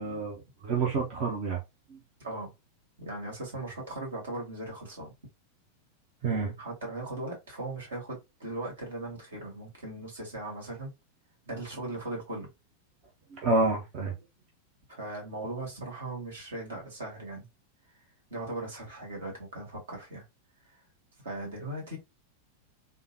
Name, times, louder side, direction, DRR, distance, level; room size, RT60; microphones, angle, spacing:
voice 1, 0.0-1.6 1.9-2.0 6.2-6.5 13.3-14.2, right 3 dB, 40° right, 0.7 m, -28 dB
voice 2, 2.2-2.5 3.0-5.1 6.6-10.9 11.5-12.5 14.9-17.5 18.3-20.2 20.7-20.8 21.2-22.0, right 2 dB, 65° right, 1.9 m, -38 dB
3.6 x 2.2 x 2.7 m
figure-of-eight pair, 90°, 0 cm